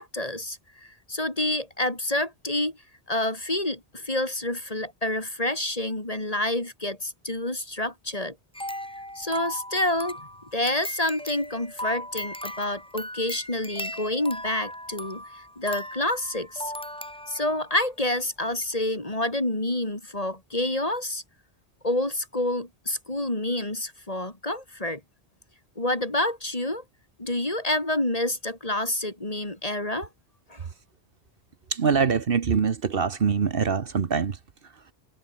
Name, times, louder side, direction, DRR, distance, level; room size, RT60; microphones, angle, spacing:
voice 1, 0.0-2.8 3.1-8.4 9.2-10.2 10.5-16.7 17.3-21.2 21.8-25.0 25.8-26.8 27.2-30.1 30.5-30.7, left 1 dB, 35° left, 3.9 m, -28 dB
sound 1, 8.5-17.7 18.2-18.3 18.6-18.7, equal, 5° left, 1.5 m, -37 dB
voice 2, 31.7-34.4, right 6 dB, 60° right, 1.3 m, -24 dB
omnidirectional pair, 1.1 m